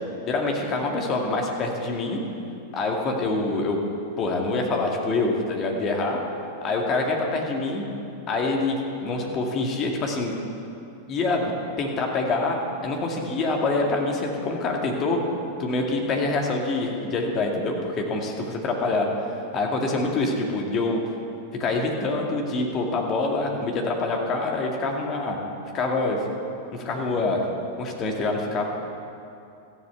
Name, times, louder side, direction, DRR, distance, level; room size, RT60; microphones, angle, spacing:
voice 1, 0.3-2.2 2.7-3.8 4.2-6.2 6.6-7.8 8.3-8.8 9.0-10.3 11.1-11.5 11.8-12.6 12.8-15.2 15.6-21.0 21.6-25.4 25.7-26.2 26.7-27.5 27.8-28.7, left 3 dB, 30° left, 1 dB, 2.1 m, -25 dB
14.5 x 7.9 x 7.0 m, 2.7 s
figure-of-eight pair, 90°, 0 cm